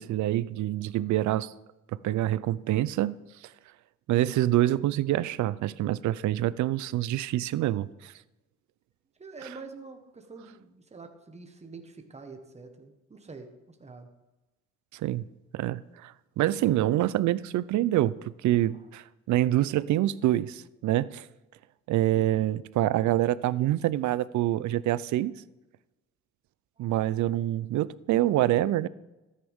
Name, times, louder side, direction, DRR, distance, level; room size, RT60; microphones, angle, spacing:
voice 1, 0.0-1.5 2.0-3.2 4.1-8.1 9.4-9.5 14.9-15.2 15.5-21.3 21.9-25.4 26.8-28.9, right 14 dB, 75° right, 0.5 m, -26 dB
voice 2, 9.2-14.1 22.1-22.5 26.8-27.3, right 4 dB, 20° right, 1.4 m, -46 dB
13.5 x 9.6 x 3.6 m
cardioid pair, 90°, 30 cm